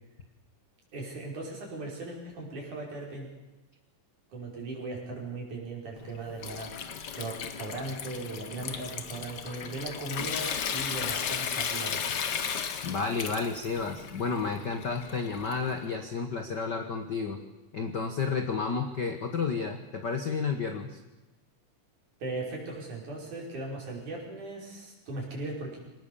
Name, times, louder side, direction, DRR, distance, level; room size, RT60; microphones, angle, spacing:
voice 1, 0.9-3.3 4.3-12.1 22.2-25.8, right 2 dB, 60° right, -1 dB, 6.7 m, -38 dB
Water tap faucet / Sink (filling or washing) / Trickle dribble, 6.0-15.9, left 7 dB, 80° left, 0.9 m, -35 dB
voice 2, 12.8-17.4 17.7-21.0, left 5 dB, 50° left, 5 dB, 1.3 m, -31 dB
24.5 x 19.0 x 7.0 m, 1.1 s
omnidirectional pair, 3.8 m